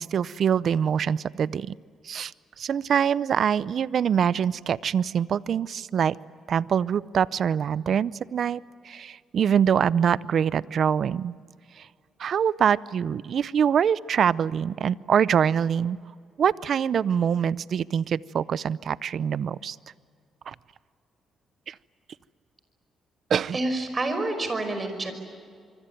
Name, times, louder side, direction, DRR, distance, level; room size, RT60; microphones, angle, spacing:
voice 1, 0.0-1.7 2.0-2.3 2.6-6.2 6.5-11.3 11.8-11.9 12.2-16.0 16.4-19.8 20.5-20.6 21.7-21.8 23.3-23.6, right 8 dB, 55° right, 20 dB, 0.6 m, -24 dB
voice 2, 23.5-25.1, right 2 dB, 30° right, 8 dB, 5.5 m, -28 dB
25.0 x 24.5 x 9.1 m, 2.2 s
cardioid pair, 90°, 0 cm